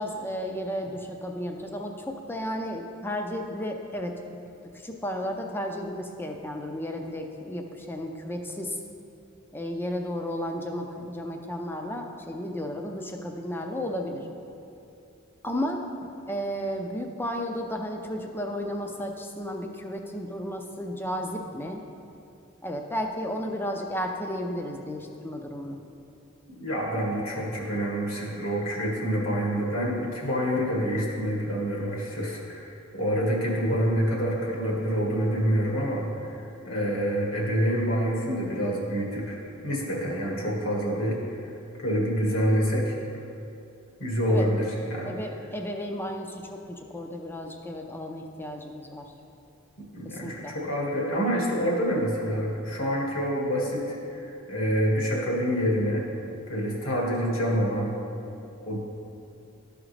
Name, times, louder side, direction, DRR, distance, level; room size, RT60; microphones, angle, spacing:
voice 1, 0.0-4.2 4.7-8.8 9.5-14.3 15.4-15.8 16.3-21.8 22.6-25.8 44.3-44.5 45.0-49.1 50.0-50.5, equal, 10° left, 2 dB, 0.5 m, -33 dB
voice 2, 26.5-36.4 36.6-41.4 41.8-43.0 44.0-45.1 49.8-56.0 56.5-58.0 58.7-58.8, equal, 70° left, -2 dB, 1.7 m, -27 dB
12.5 x 5.0 x 3.2 m, 2.7 s
head